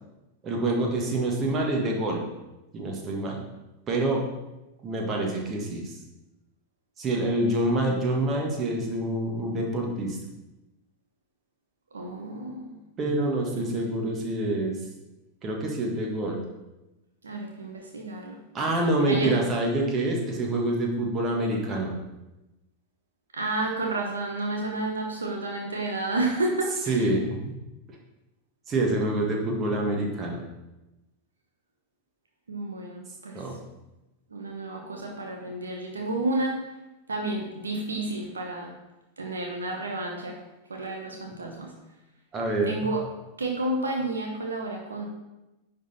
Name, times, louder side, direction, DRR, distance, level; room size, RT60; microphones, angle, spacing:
voice 1, 0.4-2.2 2.7-3.4 3.9-4.2 4.8-5.9 7.0-10.2 13.0-14.8 15.4-16.4 18.5-21.9 26.9-27.2 28.7-30.4 33.4-33.6 42.3-42.7, right 1 dB, 25° right, 0 dB, 1.7 m, -26 dB
voice 2, 11.9-12.8 17.2-18.4 19.1-19.4 23.3-27.1 32.5-33.4 34.3-36.6 37.1-38.7 39.2-40.4 40.7-41.7 42.6-43.0 43.4-45.0, right 2 dB, 75° right, 1 dB, 1.1 m, -31 dB
10.5 x 4.0 x 4.3 m, 1.0 s
figure-of-eight pair, 90°, 0 cm